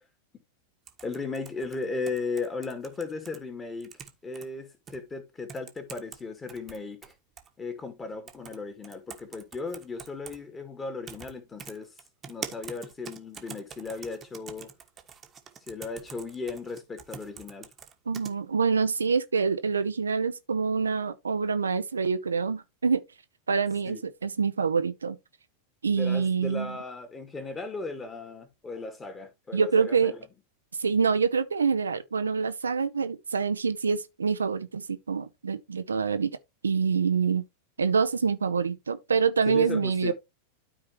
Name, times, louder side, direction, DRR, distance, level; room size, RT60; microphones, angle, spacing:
sound 1, 0.9-3.4 3.8-4.5 4.9-5.0 5.5-6.2 6.5-7.5 8.3-8.6 8.8-10.4 11.1-11.3 11.6-18.3, right 7 dB, 25° right, 1.4 m, -44 dB
voice 1, 1.0-7.1 7.6-11.9 12.2-14.7 15.7-17.7 23.9-24.0 25.9-30.2 39.5-40.1, left 3 dB, 15° left, 2.4 m, -36 dB
voice 2, 18.1-23.0 23.5-25.2 25.8-26.8 29.5-30.1 30.8-36.4 36.6-37.4 37.8-40.1, right 5 dB, 75° right, 0.7 m, -26 dB
12.5 x 4.7 x 3.0 m
figure-of-eight pair, 90°, 0 cm